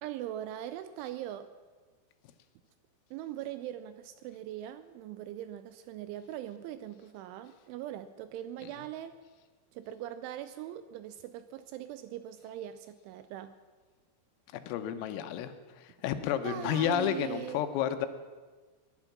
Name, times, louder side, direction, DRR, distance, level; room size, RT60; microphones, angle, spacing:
voice 1, 0.0-1.5 3.1-9.2 9.7-13.6 16.4-17.7, right 12 dB, 80° right, 11 dB, 2.8 m, -41 dB
voice 2, 14.7-18.1, left 10 dB, 85° left, 9 dB, 3.6 m, -31 dB
20.5 x 11.0 x 6.0 m, 1.4 s
omnidirectional pair, 5.9 m